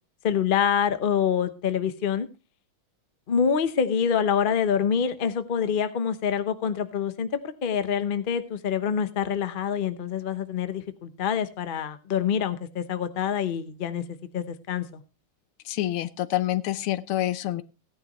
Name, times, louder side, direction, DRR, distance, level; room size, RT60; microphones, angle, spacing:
voice 1, 0.2-2.3 3.3-14.0 14.3-15.0, left 7 dB, 50° left, 10 dB, 0.6 m, -26 dB
voice 2, 15.7-17.6, left 14 dB, 85° left, 14 dB, 1.6 m, -27 dB
16.5 x 10.0 x 3.0 m, 0.29 s
omnidirectional pair, 2.3 m